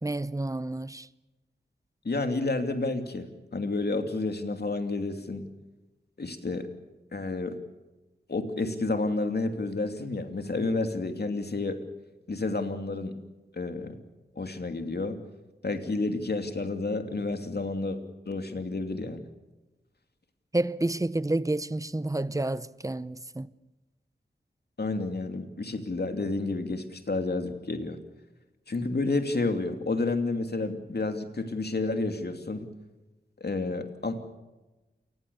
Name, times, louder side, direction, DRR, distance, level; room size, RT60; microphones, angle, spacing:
voice 1, 0.0-1.1 20.5-23.5, right 2 dB, 15° right, 0.8 m, -29 dB
voice 2, 2.0-5.5 6.2-6.7 7.1-7.6 8.3-11.8 12.3-13.2 13.5-13.9 14.4-15.2 15.6-18.0 18.2-19.3 24.8-28.0 28.7-32.7 33.4-34.2, left 3 dB, 60° left, 2.8 m, -30 dB
28.0 x 20.5 x 7.0 m
wide cardioid pair, 75°, 19 cm